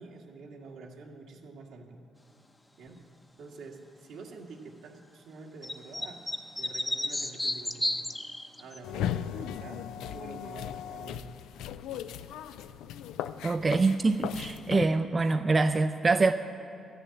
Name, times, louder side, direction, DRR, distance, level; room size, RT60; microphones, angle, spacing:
voice 1, 0.0-2.0 2.8-3.0 3.4-6.3 6.6-8.1 8.6-11.3 11.9-12.2, right 3 dB, 80° right, 0 dB, 1.8 m, -47 dB
sound 1, 5.6-8.8, left 1 dB, 15° left, 0.7 m, -32 dB
sound 2, 8.8-14.8, left 10 dB, 90° left, 0.4 m, -37 dB
voice 2, 13.4-16.3, right 3 dB, 30° right, 7 dB, 0.5 m, -25 dB
13.5 x 6.9 x 8.8 m, 2.9 s
cardioid pair, 90°, 0 cm